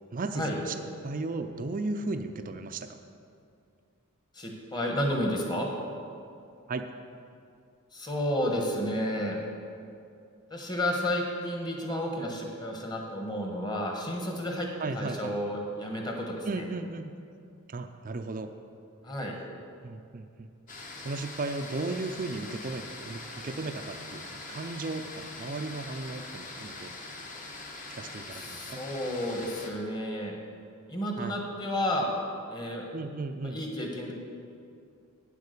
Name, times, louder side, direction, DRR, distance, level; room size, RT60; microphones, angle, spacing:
voice 1, 0.1-0.7 1.0-2.9 6.7-6.9 14.8-15.3 16.4-17.1 17.7-18.5 19.8-20.5 21.0-26.9 27.9-28.8 31.2-31.3 32.9-33.6, right 3 dB, 35° right, 6 dB, 0.4 m, -35 dB
voice 2, 4.3-5.7 7.9-9.4 10.5-14.7 14.9-16.7 19.0-19.3 28.3-30.3 30.9-32.1 32.5-32.9 33.4-34.1, equal, 20° left, 1 dB, 1.3 m, -31 dB
sound 1, 20.7-29.7, left 2 dB, 35° left, 1.2 m, -43 dB
9.0 x 8.3 x 6.7 m, 2.5 s
head